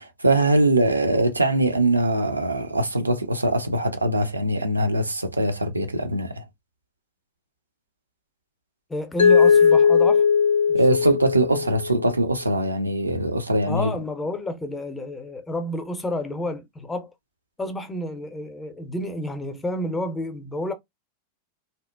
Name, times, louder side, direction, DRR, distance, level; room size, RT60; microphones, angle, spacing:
voice 1, 0.0-6.4 10.7-13.9, right 1 dB, 80° right, 0.4 m, -22 dB
voice 2, 8.9-10.3 10.9-11.0 13.7-17.1 17.6-20.7, left 1 dB, 10° left, 0.5 m, -30 dB
Mallet percussion, 9.2-12.1, left 6 dB, 65° left, 0.3 m, -18 dB
2.7 x 2.0 x 2.3 m
figure-of-eight pair, 90°, 0 cm